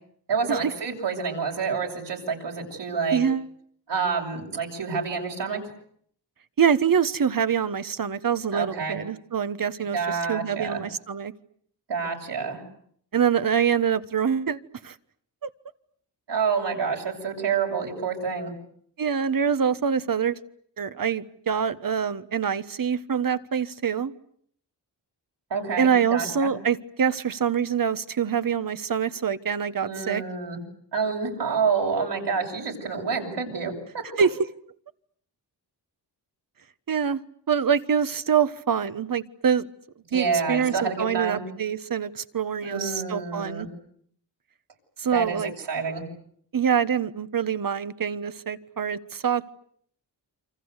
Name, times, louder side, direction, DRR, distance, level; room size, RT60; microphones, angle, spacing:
voice 1, 0.3-3.2 3.9-5.6 8.5-9.0 9.9-10.8 11.9-12.6 16.3-18.5 25.5-26.5 29.8-30.6 30.9-34.3 40.1-41.4 42.6-43.7 45.1-46.1, right 5 dB, 75° right, 0 dB, 7.6 m, -28 dB
voice 2, 3.1-3.5 6.6-11.3 13.1-14.9 15.4-15.5 19.0-20.4 20.8-24.1 25.8-30.2 34.2-34.4 36.9-37.2 37.5-39.7 40.1-43.7 45.0-45.5 46.5-49.5, right 7 dB, 50° right, 13 dB, 1.4 m, -25 dB
28.0 x 26.0 x 8.2 m, 0.65 s
wide cardioid pair, 100°, 42 cm